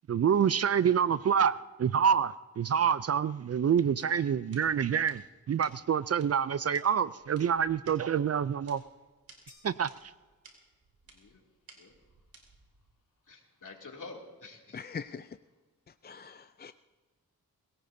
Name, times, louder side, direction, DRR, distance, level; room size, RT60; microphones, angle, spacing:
voice 1, 0.1-8.8 9.6-10.1, right 8 dB, 45° right, 0.4 m, -27 dB
sound 1, 3.9-12.9, right 3 dB, 75° right, 3.3 m, -60 dB
sound 2, 9.5-10.9, left 4 dB, 85° left, 4.2 m, -62 dB
voice 2, 13.3-14.8, left 3 dB, 60° left, 2.7 m, -48 dB
voice 3, 14.7-15.3 16.0-16.7, left 6 dB, 30° left, 0.4 m, -42 dB
21.5 x 17.5 x 2.7 m
cardioid pair, 60°, 35 cm